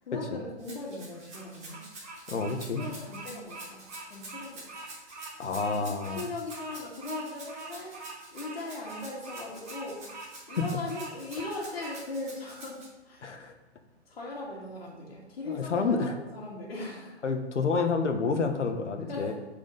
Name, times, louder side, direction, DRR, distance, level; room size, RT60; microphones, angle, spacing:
voice 1, 0.0-1.8 2.8-4.6 5.7-7.9 8.3-10.0 10.5-12.8 13.1-13.3 14.1-17.2 19.1-19.3, left 2 dB, 55° left, -4 dB, 2.3 m, -39 dB
Rattle (instrument), 0.6-12.8, right 2 dB, 10° right, 1.6 m, -48 dB
Bird vocalization bird call bird song, 1.1-12.0, right 3 dB, 35° right, 2.5 m, -44 dB
voice 2, 2.3-2.8 5.4-6.2 10.6-10.7 13.2-13.5 15.5-16.1 17.2-19.3, left 4 dB, 80° left, 6 dB, 1.4 m, -29 dB
9.0 x 5.0 x 4.0 m, 1.2 s
hypercardioid pair, 180°, 35 cm